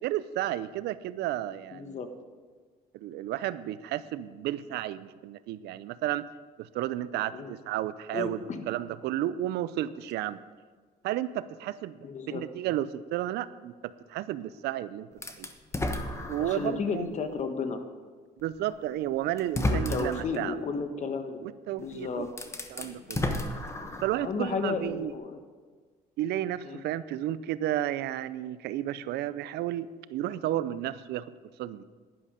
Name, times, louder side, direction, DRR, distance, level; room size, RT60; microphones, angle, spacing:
voice 1, 0.0-2.0 2.9-6.3 6.6-10.4 11.0-15.1 15.4-15.5 16.3-17.1 18.4-20.6 21.4-22.3 22.7-23.4 24.0-25.1 26.2-31.3 31.6-31.8, right 13 dB, 75° right, 16 dB, 0.5 m, -32 dB
voice 2, 1.7-2.1 7.3-7.5 8.1-8.7 12.0-12.4 16.2-17.8 19.7-21.4 21.8-22.3 24.2-25.4 26.6-26.8, left 4 dB, 45° left, 7 dB, 1.3 m, -33 dB
sound 1, 15.2-16.8 17.4-17.5 18.7-18.8 19.4-20.4 21.8-21.9 22.3-24.3, left 1 dB, 15° left, 1.1 m, -32 dB
11.0 x 11.0 x 5.1 m, 1.5 s
cardioid pair, 110°, 17 cm